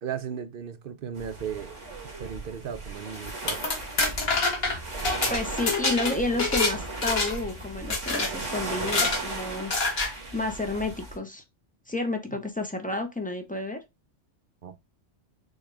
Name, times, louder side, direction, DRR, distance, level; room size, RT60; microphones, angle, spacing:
voice 1, 0.0-1.8 2.0-3.6 14.6-14.8, right 8 dB, 60° right, 0.7 m, -36 dB
sound 1, 1.1-11.2, right 2 dB, 85° right, 2.1 m, -37 dB
sound 2, 3.3-6.7 7.0-7.5 7.9-8.3 8.8-9.2 9.7-10.1, left 3 dB, 60° left, 1.6 m, -26 dB
voice 2, 5.3-9.7 10.3-11.4 11.9-13.8, left 2 dB, 10° left, 0.6 m, -30 dB
6.4 x 2.4 x 3.2 m
omnidirectional pair, 1.2 m